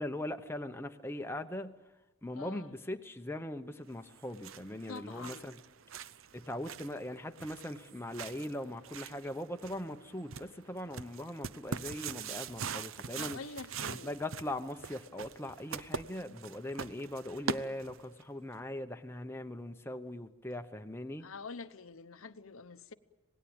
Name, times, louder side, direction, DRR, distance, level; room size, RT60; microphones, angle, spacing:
voice 1, 0.0-1.8 2.2-5.6 6.3-13.4 13.9-21.3, left 1 dB, 10° left, 0.9 m, -40 dB
voice 2, 2.3-2.7 4.9-5.6 13.2-14.1 21.2-22.9, left 4 dB, 75° left, 0.9 m, -46 dB
sound 1, 4.0-18.2, right 6 dB, 70° right, 0.7 m, -43 dB
26.5 x 19.0 x 8.8 m
head